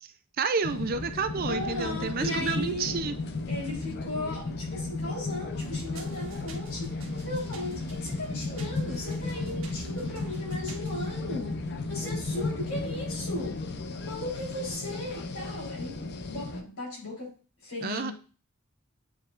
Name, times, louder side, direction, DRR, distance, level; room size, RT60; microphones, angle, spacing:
voice 1, 0.4-3.2 17.8-18.1, right 5 dB, 40° right, 10 dB, 0.5 m, -30 dB
sound 1, 0.6-16.6, left 3 dB, 50° left, 0.6 m, -34 dB
voice 2, 1.5-3.0 3.5-13.6 14.0-17.4 17.6-18.1, left 1 dB, 85° left, -3 dB, 3.7 m, -37 dB
sound 2, 5.5-11.2, right 3 dB, 70° right, 1.5 m, -48 dB
sound 3, 8.7-14.7, equal, ahead, 1.5 m, -52 dB
8.3 x 4.6 x 2.5 m, 0.35 s
head